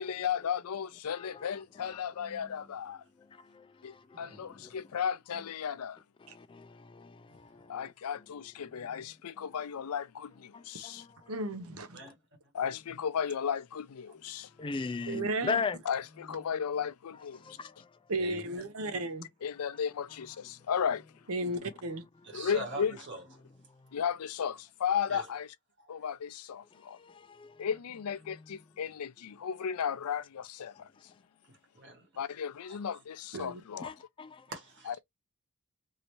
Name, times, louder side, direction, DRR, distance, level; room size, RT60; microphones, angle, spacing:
voice 1, 0.0-3.0 3.8-6.0 7.7-11.1 12.5-14.5 15.8-17.6 19.4-21.0 22.3-22.9 23.9-25.5 25.9-27.0 27.6-30.9 32.2-33.9 34.9-35.0, left 7 dB, 85° left, 0.4 m, -35 dB
voice 2, 4.1-4.8 7.3-7.4 11.9-12.1 14.0-14.1 14.8-15.6 18.2-18.7 22.2-23.2 25.1-25.3 25.8-26.0 31.5-32.1 32.7-32.8 33.3-33.5 33.9-34.0 34.5-35.0, right 2 dB, 55° right, 1.2 m, -45 dB
voice 3, 6.3-7.2 7.7-7.8 10.5-11.0 14.6-15.8 17.4-17.7 27.0-27.5 33.8-34.4, left 5 dB, 20° left, 0.3 m, -36 dB
voice 4, 11.3-11.9 15.1-15.6 18.1-19.3 21.3-22.0 33.3-33.6, right 2 dB, 75° right, 0.7 m, -34 dB
3.1 x 2.8 x 2.9 m
head